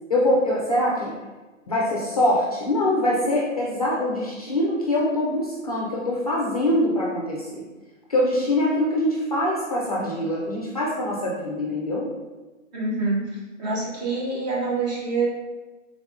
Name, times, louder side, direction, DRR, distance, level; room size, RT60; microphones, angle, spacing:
voice 1, 0.1-1.1 1.7-7.6 8.1-12.1, left 1 dB, 30° left, -4 dB, 0.4 m, -23 dB
voice 2, 12.7-13.3 13.6-15.3, right 3 dB, 35° right, -3 dB, 0.8 m, -26 dB
3.5 x 3.4 x 2.5 m, 1.2 s
hypercardioid pair, 140°, 39 cm